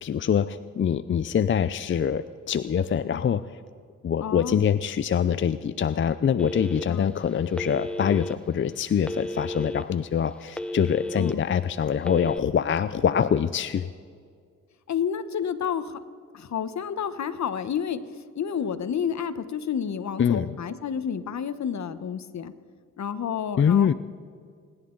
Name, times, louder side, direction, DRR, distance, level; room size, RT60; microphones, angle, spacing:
voice 1, 0.0-3.6 4.0-13.9 20.2-20.6 23.6-23.9, left 8 dB, 40° left, 13 dB, 0.5 m, -24 dB
voice 2, 4.2-4.6 6.9-7.1 11.2-11.4 14.9-16.0 16.3-18.0 18.3-22.5 23.0-23.9, left 7 dB, 60° left, 12 dB, 1.1 m, -30 dB
Telephone, 6.4-7.1 7.5-8.3 9.0-9.8 10.3-11.3 12.0-12.4, left 1 dB, 5° left, 0.9 m, -33 dB
28.0 x 11.0 x 3.9 m, 2.1 s
cardioid pair, 65°, 31 cm